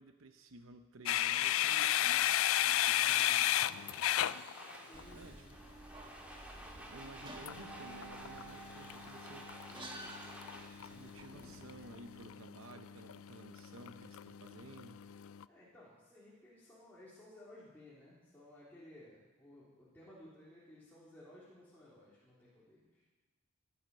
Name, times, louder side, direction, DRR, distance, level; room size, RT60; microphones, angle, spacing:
voice 1, 0.0-3.7 5.1-5.4 6.6-9.9 10.8-15.0, right 2 dB, 70° right, 8 dB, 0.8 m, -54 dB
sound 1, 1.1-5.1 7.5-15.4, left 12 dB, 75° left, 0.4 m, -35 dB
Domestic sounds home sounds, 3.2-12.1, equal, 5° right, 2.1 m, -53 dB
voice 2, 4.8-5.6 15.5-23.0, left 1 dB, 10° left, -10 dB, 3.2 m, -57 dB
sound 2, 4.9-12.3, right 2 dB, 25° right, 1.4 m, -53 dB
17.5 x 11.0 x 5.4 m, 1.2 s
head